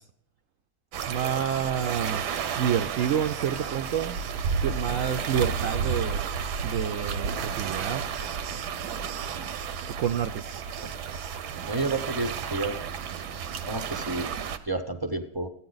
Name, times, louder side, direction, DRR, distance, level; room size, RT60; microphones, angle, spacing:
sound 1, 0.9-14.6, right 6 dB, 85° right, 1.4 m, -32 dB
voice 1, 1.1-2.2 2.6-4.2 4.6-6.2 6.6-8.0 9.9-10.4, right 8 dB, 65° right, 7 dB, 0.8 m, -28 dB
voice 2, 11.6-12.9 13.7-14.3 14.6-15.5, right 2 dB, 25° right, 8 dB, 0.4 m, -30 dB
14.5 x 9.6 x 3.9 m, 0.72 s
omnidirectional pair, 1.7 m